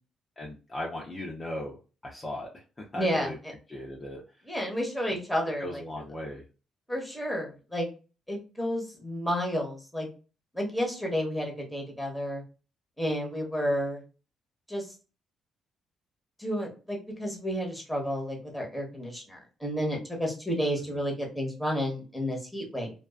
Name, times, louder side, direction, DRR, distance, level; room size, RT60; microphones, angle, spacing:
voice 1, 0.4-1.8 2.0-3.4 3.7-4.2 5.6-6.4 20.9-21.0, left 1 dB, 25° left, -2 dB, 0.5 m, -37 dB
voice 2, 2.9-3.5 4.5-5.8 6.9-7.9 8.3-10.1 10.5-12.4 13.0-14.0 14.7-14.9 16.4-22.9, equal, ahead, 0 dB, 1.0 m, -31 dB
2.3 x 2.2 x 2.3 m, 0.33 s
cardioid pair, 90°, 0 cm